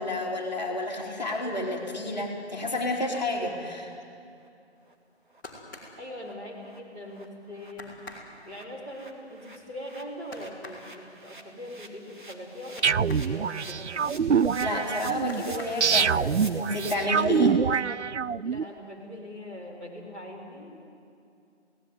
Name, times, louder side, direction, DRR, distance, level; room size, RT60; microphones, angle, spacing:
voice 1, 0.0-3.9 14.6-17.6, left 1 dB, 40° left, 0 dB, 3.2 m, -30 dB
sound 1, 4.0-4.1 4.4-4.5 4.8-4.9 5.3-5.4 5.7-5.9 6.2-6.3 6.6-6.8 7.0-16.9, right 2 dB, 45° right, 2.5 m, -48 dB
sound 2, 5.0-7.0 7.3-7.4 7.7-13.3 13.7-14.8 15.2-16.3 16.7-17.3 17.6-18.3 18.6-18.7, left 2 dB, 15° left, 3.7 m, -47 dB
voice 2, 6.0-7.9 8.4-14.1 18.4-20.9, left 1 dB, 10° right, -8 dB, 3.3 m, -41 dB
sound 3, 12.8-18.6, right 6 dB, 80° right, 0.5 m, -25 dB
27.0 x 17.5 x 9.4 m, 2.5 s
figure-of-eight pair, 160°, 35 cm